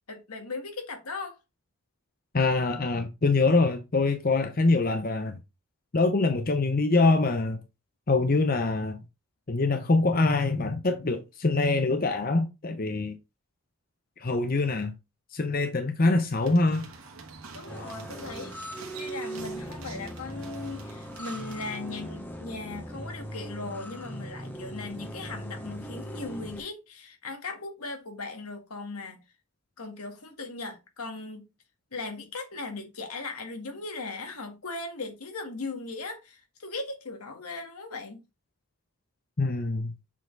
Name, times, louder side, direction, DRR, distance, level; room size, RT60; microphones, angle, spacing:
voice 1, 0.1-1.4 17.5-18.5 19.0-29.2 29.8-31.5 31.9-38.2, left 3 dB, 90° left, 1.9 m, -38 dB
voice 2, 2.3-5.4 5.9-7.6 8.1-9.0 9.5-13.2 14.2-14.9 15.3-16.9 39.4-39.9, left 3 dB, 40° left, 0.7 m, -24 dB
sound 1, 16.3-21.8, right 4 dB, 70° right, 1.6 m, -47 dB
sound 2, 17.7-26.6, right 1 dB, 10° left, 0.9 m, -39 dB
7.3 x 4.2 x 3.9 m
head